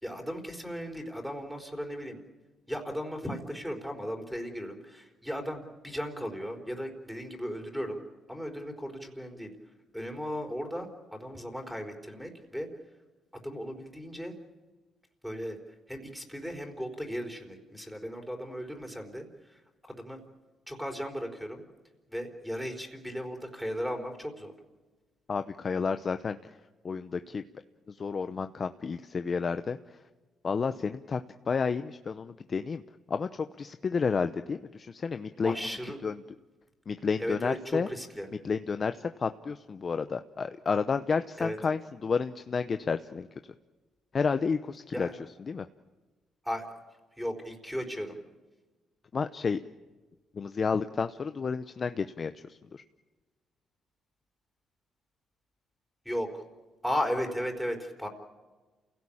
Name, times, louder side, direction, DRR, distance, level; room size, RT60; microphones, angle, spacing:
voice 1, 0.0-2.2 2.7-8.0 8.3-9.5 9.9-12.7 13.3-14.3 15.2-15.6 15.9-20.2 20.7-21.6 22.1-24.5 35.4-36.0 37.2-38.3 41.4-41.6 44.9-45.1 46.4-46.7 47.2-48.2 56.0-56.4 56.8-58.1, equal, ahead, 2 dB, 4.4 m, -36 dB
voice 2, 25.3-26.6 26.8-27.4 27.9-30.0 30.4-32.8 33.1-35.6 36.0-36.2 36.9-37.9 38.4-43.3 44.1-45.1 45.5-45.6 49.1-49.6 50.3-52.8, left 5 dB, 40° left, 10 dB, 0.8 m, -31 dB
28.0 x 17.0 x 8.7 m, 1.2 s
cardioid pair, 90°, 0 cm